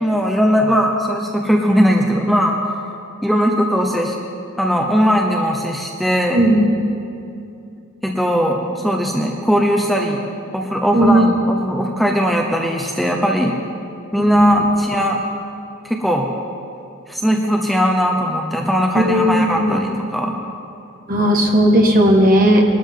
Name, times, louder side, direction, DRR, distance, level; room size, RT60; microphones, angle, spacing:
voice 1, 0.0-2.6 3.2-4.1 4.6-6.4 8.0-10.2 10.5-13.6 14.1-15.2 15.8-16.3 17.1-20.4, equal, ahead, 0 dB, 0.8 m, -18 dB
voice 2, 10.9-11.4 14.2-14.6 18.9-19.8 21.1-22.6, equal, 45° right, 1 dB, 1.6 m, -15 dB
21.5 x 12.5 x 3.8 m, 2.5 s
head